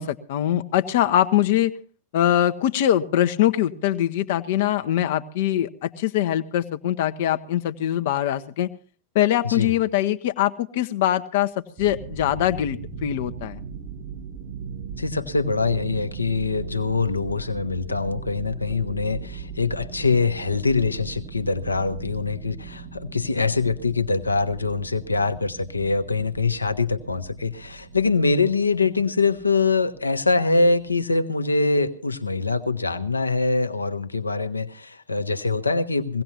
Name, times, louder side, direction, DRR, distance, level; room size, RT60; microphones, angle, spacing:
voice 1, 0.0-1.7 2.1-8.7 9.1-11.5 11.8-13.6, left 12 dB, 55° left, 9 dB, 0.8 m, -22 dB
sound 1, 11.8-31.0, right 6 dB, 40° right, 1.6 m, -39 dB
voice 2, 15.0-36.2, left 3 dB, 80° left, 9 dB, 1.1 m, -24 dB
22.0 x 17.0 x 2.8 m, 0.42 s
figure-of-eight pair, 90°, 0 cm